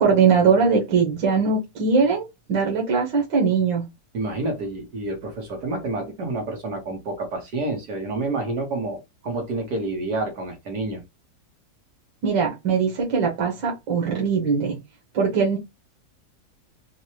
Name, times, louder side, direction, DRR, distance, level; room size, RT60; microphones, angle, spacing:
voice 1, 0.0-3.8 12.2-14.8 15.1-15.6, right 5 dB, 90° right, 1.8 m, -21 dB
voice 2, 4.1-11.0, right 2 dB, 65° right, 1.7 m, -29 dB
4.7 x 2.2 x 2.9 m
omnidirectional pair, 2.0 m